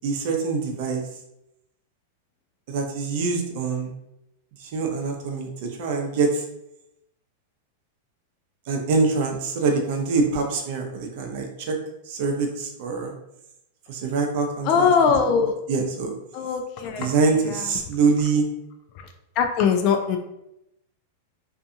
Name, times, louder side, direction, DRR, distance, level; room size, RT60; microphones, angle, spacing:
voice 1, 0.0-1.0 2.7-3.9 4.7-5.5 5.8-6.3 8.7-11.8 12.2-13.1 13.9-14.9 15.7-16.1 17.0-18.5, right 4 dB, 60° right, 3 dB, 0.6 m, -24 dB
voice 2, 14.7-15.5 16.3-17.1 17.5-17.6 19.4-20.2, left 6 dB, 45° left, 4 dB, 0.3 m, -21 dB
2.5 x 2.4 x 2.6 m, 0.84 s
hypercardioid pair, 120°, 0 cm